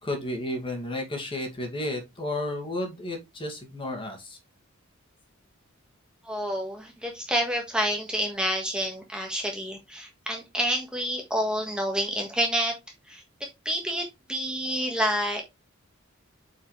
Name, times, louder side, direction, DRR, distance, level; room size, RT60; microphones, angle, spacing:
voice 1, 0.0-4.4, left 1 dB, 25° left, 2.1 m, -32 dB
voice 2, 6.2-12.8 13.1-15.4, equal, 5° right, 1.4 m, -29 dB
8.3 x 4.8 x 3.1 m
head